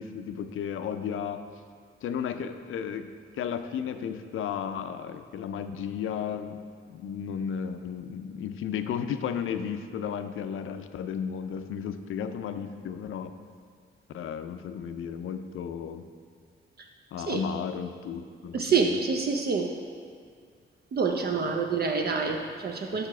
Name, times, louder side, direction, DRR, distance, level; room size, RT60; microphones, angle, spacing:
voice 1, 0.0-1.4 2.0-3.1 3.3-6.6 6.9-13.3 14.1-16.0 17.1-19.0 21.3-21.6, left 7 dB, 75° left, 9 dB, 0.4 m, -34 dB
voice 2, 18.5-19.7 20.9-23.1, right 5 dB, 50° right, 3 dB, 0.5 m, -27 dB
5.0 x 4.6 x 5.9 m, 2.1 s
cardioid pair, 80°, 21 cm